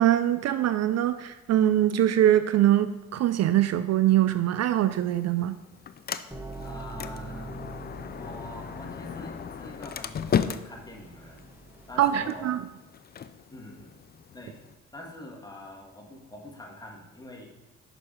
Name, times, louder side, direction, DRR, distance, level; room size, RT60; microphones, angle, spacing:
voice 1, 0.0-5.6 12.0-12.6, right 12 dB, 60° right, 12 dB, 0.4 m, -23 dB
Sliding door, 4.8-14.7, left 7 dB, 35° left, 0.4 m, -36 dB
sound 1, 6.3-12.3, right 2 dB, 5° right, 1.3 m, -44 dB
voice 2, 6.6-7.8 8.2-11.5 11.9-12.5 13.5-13.9 14.3-14.6 14.9-17.5, left 1 dB, 15° left, -1 dB, 1.7 m, -44 dB
6.6 x 5.0 x 5.5 m, 1.0 s
cardioid pair, 90°, 30 cm